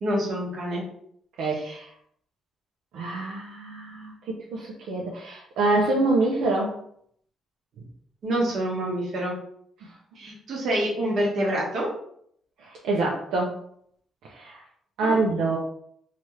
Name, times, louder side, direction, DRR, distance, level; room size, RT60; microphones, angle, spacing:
voice 1, 0.0-0.8 1.6-1.8 8.2-9.3 10.2-11.9 15.0-15.2, right 1 dB, 60° right, -2 dB, 1.1 m, -27 dB
voice 2, 1.4-1.8 2.9-6.8 9.8-10.0 12.6-13.6 14.2-14.6 15.0-15.6, right 2 dB, 85° right, -3 dB, 0.5 m, -26 dB
2.9 x 2.4 x 3.1 m, 0.67 s
cardioid pair, 90°, 0 cm